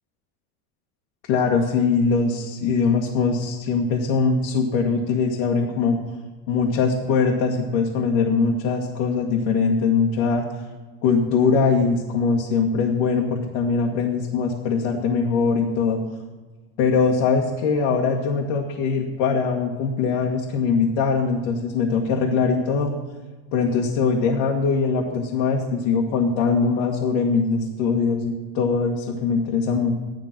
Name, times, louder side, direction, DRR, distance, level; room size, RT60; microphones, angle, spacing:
voice 1, 1.3-6.0 6.5-10.4 11.0-16.0 16.8-22.9 23.5-29.9, left 5 dB, 80° left, -1 dB, 1.9 m, -22 dB
13.5 x 11.0 x 6.0 m, 1.3 s
cardioid pair, 155°, 32 cm